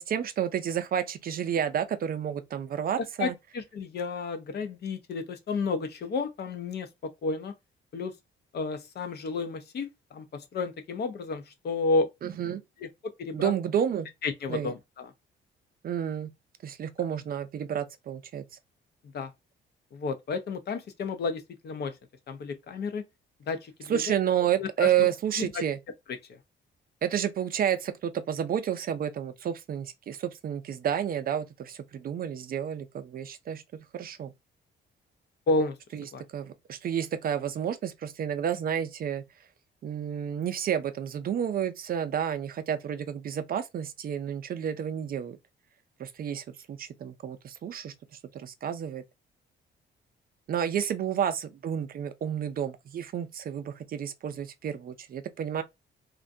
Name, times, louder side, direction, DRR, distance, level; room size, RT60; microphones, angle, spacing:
voice 1, 0.0-3.3 12.2-12.6 13.3-14.1 14.5-14.7 15.8-16.3 16.6-18.4 23.9-25.8 27.0-34.3 35.9-36.1 36.3-39.2 39.8-45.4 46.0-47.9 48.3-49.0 50.5-55.6, right 9 dB, 50° right, 0.4 m, -30 dB
voice 2, 3.2-7.5 7.9-8.1 8.5-12.1 12.8-13.5 14.2-15.1 19.1-19.3 19.9-22.0 22.3-23.0 23.5-24.2 24.6-25.1 25.4-25.6 26.3-26.4 35.5-35.8 36.1-36.2, left 3 dB, 55° left, 0.6 m, -31 dB
2.5 x 2.1 x 2.5 m
cardioid pair, 90°, 20 cm